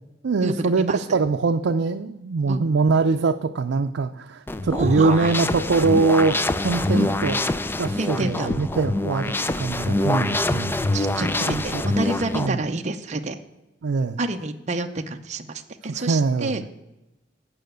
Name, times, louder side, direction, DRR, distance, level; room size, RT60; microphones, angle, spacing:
voice 1, 0.2-7.4 7.8-10.7 11.4-12.0 12.3-12.6 13.8-14.2 15.9-16.6, right 4 dB, 85° right, 5 dB, 0.5 m, -23 dB
sound 1, 4.5-12.5, left 2 dB, 10° left, 0.3 m, -25 dB
voice 2, 4.7-5.3 6.9-7.1 8.0-8.5 10.9-13.4 14.2-16.7, right 2 dB, 40° right, 5 dB, 0.7 m, -28 dB
9.0 x 5.7 x 7.9 m, 0.98 s
head